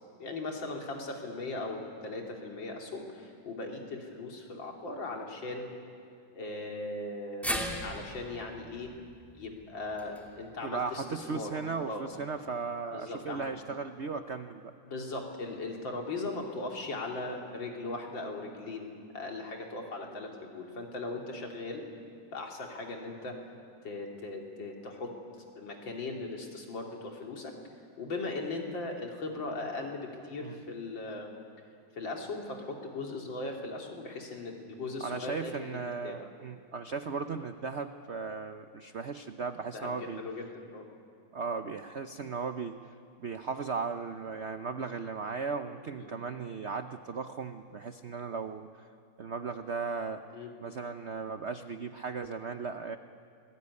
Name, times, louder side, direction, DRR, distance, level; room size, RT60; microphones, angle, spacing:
voice 1, 0.2-5.7 6.3-8.9 9.4-11.5 11.8-12.0 12.9-13.5 14.8-21.9 22.3-23.4 23.8-25.2 25.6-27.5 28.0-31.4 32.0-35.8 36.0-36.2 39.7-40.9 46.0-46.1 50.3-50.5, left 2 dB, 60° left, 1 dB, 3.6 m, -38 dB
sound 1, 7.4-11.7 12.0-12.1 13.3-13.4, equal, ahead, 2.5 m, -39 dB
voice 2, 10.6-14.7 30.4-30.6 35.0-40.2 41.3-42.8 43.2-48.7 49.2-50.2 50.6-53.0, right 5 dB, 65° right, 8 dB, 0.6 m, -36 dB
27.0 x 20.0 x 9.7 m, 2.4 s
omnidirectional pair, 2.3 m